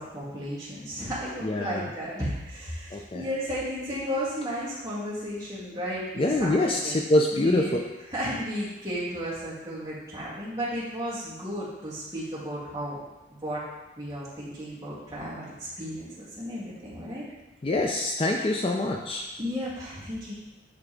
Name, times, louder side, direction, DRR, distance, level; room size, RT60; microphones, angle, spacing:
voice 1, 0.0-7.0 7.3-7.8 8.1-13.0 13.4-13.6 14.0-17.3 19.4-20.3, equal, 20° right, -9 dB, 2.3 m, -34 dB
voice 2, 1.4-1.9 2.9-3.3 6.2-7.6 17.6-19.3, left 2 dB, 30° left, 1 dB, 0.4 m, -25 dB
10.5 x 3.6 x 3.4 m, 1.1 s
head